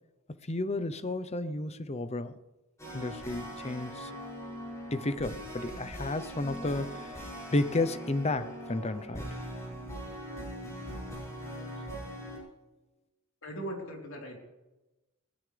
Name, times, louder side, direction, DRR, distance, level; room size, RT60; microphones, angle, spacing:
voice 1, 0.4-2.4 2.9-4.1 4.9-9.3, left 2 dB, 30° left, 12 dB, 0.7 m, -32 dB
sound 1, 2.8-12.4, equal, 15° left, 6.7 m, -41 dB
voice 2, 13.4-14.4, right 1 dB, 65° left, -1 dB, 3.9 m, -39 dB
21.5 x 17.5 x 3.4 m, 1.1 s
head